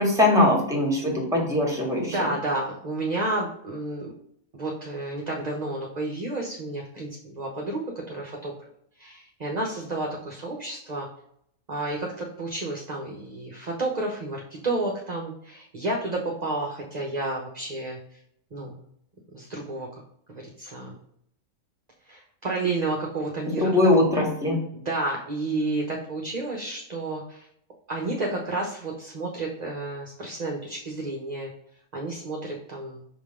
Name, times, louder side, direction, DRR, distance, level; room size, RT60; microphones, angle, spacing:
voice 1, 0.0-2.3 23.6-24.6, left 1 dB, ahead, -1 dB, 1.9 m, -21 dB
voice 2, 2.0-4.1 4.5-8.5 9.0-11.1 11.7-18.2 18.5-18.8 19.3-20.0 20.3-21.0 22.1-24.2 24.7-27.5 27.9-31.5 31.9-33.0, right 2 dB, 35° right, 0 dB, 0.9 m, -31 dB
6.1 x 3.8 x 4.9 m, 0.70 s
omnidirectional pair, 1.5 m